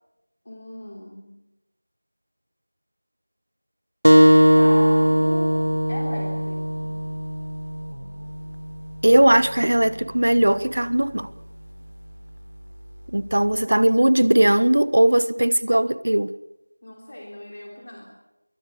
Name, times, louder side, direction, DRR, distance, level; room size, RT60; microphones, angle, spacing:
voice 1, 0.4-1.4 4.4-5.6 5.9-7.0 16.8-18.0, left 1 dB, 30° left, 3.4 m, -37 dB
sound 1, 4.0-9.2, equal, 85° right, 1.4 m, -19 dB
voice 2, 9.0-11.3 13.1-16.3, right 1 dB, 50° right, 1.0 m, -18 dB
25.0 x 23.0 x 7.2 m
figure-of-eight pair, 175°, 0 cm